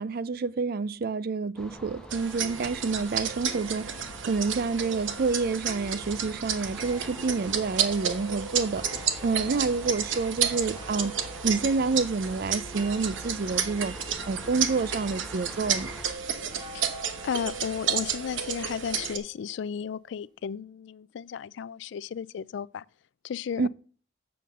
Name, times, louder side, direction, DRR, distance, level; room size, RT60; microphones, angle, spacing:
voice 1, 0.0-3.9 4.3-8.8 9.2-11.1 11.4-13.9 14.3-15.9 23.6-23.7, right 4 dB, 50° right, 0.4 m, -28 dB
sound 1, 1.6-16.2, equal, 5° left, 0.9 m, -45 dB
sound 2, 2.1-19.2, right 8 dB, 85° right, 1.1 m, -32 dB
sound 3, 6.0-6.1 6.4-19.6 20.4-20.5, left 2 dB, 20° right, 3.6 m, -51 dB
voice 2, 17.2-22.8 23.2-23.7, left 7 dB, 70° left, 0.3 m, -34 dB
7.6 x 6.6 x 6.6 m
head